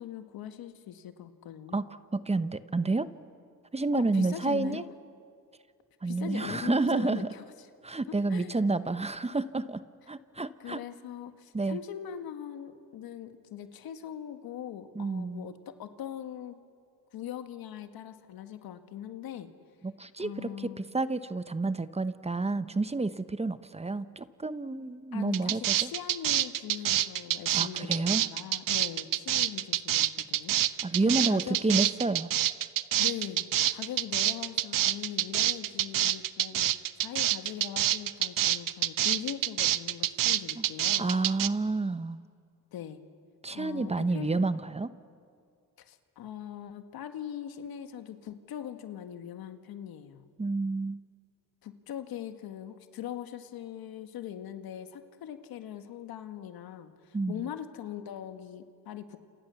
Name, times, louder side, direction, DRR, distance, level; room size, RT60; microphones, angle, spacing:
voice 1, 0.0-1.8 3.9-4.9 6.0-7.4 8.1-8.6 10.6-16.6 17.1-19.5 20.2-20.9 25.1-30.6 31.1-31.9 33.0-33.4 33.7-41.1 42.7-43.0 43.5-44.3 45.8-50.2 51.6-59.2, left 10 dB, 80° left, 8 dB, 1.9 m, -41 dB
voice 2, 1.7-3.1 3.7-4.8 6.0-7.3 7.8-9.8 10.1-10.8 11.5-11.8 14.9-15.5 19.8-25.9 27.5-28.2 30.8-32.3 40.6-40.7 41.0-42.2 43.4-44.9 50.4-51.0 57.1-57.4, right 3 dB, 15° right, 12 dB, 1.0 m, -29 dB
sound 1, 25.3-41.5, right 12 dB, 65° right, 1.0 m, -27 dB
30.0 x 28.0 x 7.1 m, 2.2 s
cardioid pair, 90°, 36 cm